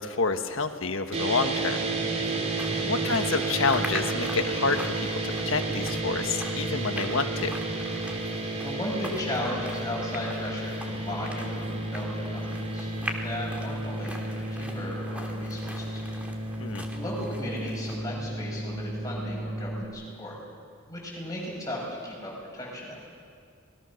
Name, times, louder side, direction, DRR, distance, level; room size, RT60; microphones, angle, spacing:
voice 1, 0.0-1.8 2.9-4.9 5.2-7.6 16.6-16.8, left 4 dB, 65° left, 7 dB, 1.5 m, -28 dB
sound 1, 1.1-19.8, right 2 dB, 30° right, 2.8 m, -32 dB
sound 2, 2.2-18.0, equal, 5° right, 2.3 m, -42 dB
voice 2, 2.6-2.9 8.6-13.0 13.2-16.3 16.9-20.4 20.9-23.2, left 1 dB, 15° left, -3 dB, 7.5 m, -36 dB
27.0 x 21.0 x 6.5 m, 2.2 s
head